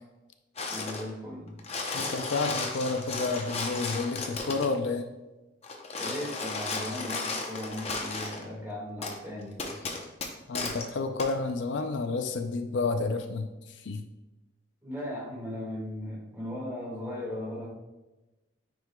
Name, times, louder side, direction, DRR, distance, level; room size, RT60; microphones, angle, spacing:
sound 1, 0.6-1.1 1.5-4.7 5.6-8.4 9.0-9.2 9.6-10.9 11.2-11.3, left 3 dB, 30° left, 0.7 m, -34 dB
voice 1, 0.7-1.5 5.9-9.8 14.8-17.7, left 1 dB, 10° right, -4 dB, 1.7 m, -37 dB
voice 2, 1.9-5.1 10.5-14.1, left 3 dB, 65° left, 7 dB, 0.5 m, -30 dB
9.4 x 5.0 x 2.2 m, 1.1 s
head